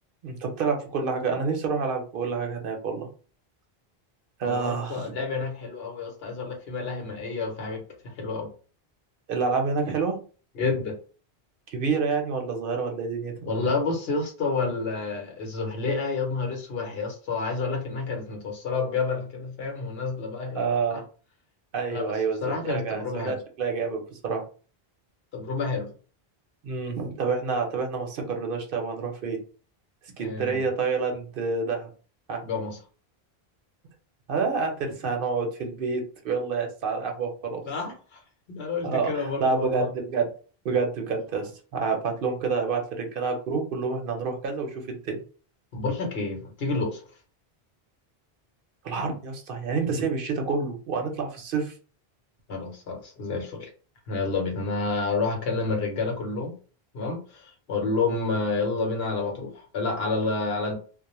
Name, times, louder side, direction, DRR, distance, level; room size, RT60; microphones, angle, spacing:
voice 1, 0.2-3.1 4.4-5.2 9.3-10.2 11.7-13.5 20.6-21.0 21.7-24.4 26.6-29.4 30.2-31.9 32.3-32.4 34.3-37.6 38.8-40.3 40.6-45.2 48.8-51.7, right 4 dB, 65° right, 3 dB, 0.8 m, -28 dB
voice 2, 4.4-8.5 10.6-11.0 13.5-21.0 21.9-22.1 22.4-23.4 25.3-25.9 30.2-30.7 32.4-32.8 37.6-38.2 38.5-39.9 45.7-47.0 52.5-53.7 54.1-56.5 56.9-60.8, left 3 dB, 75° left, 2 dB, 1.0 m, -29 dB
2.3 x 2.0 x 2.9 m, 0.38 s
omnidirectional pair, 1.0 m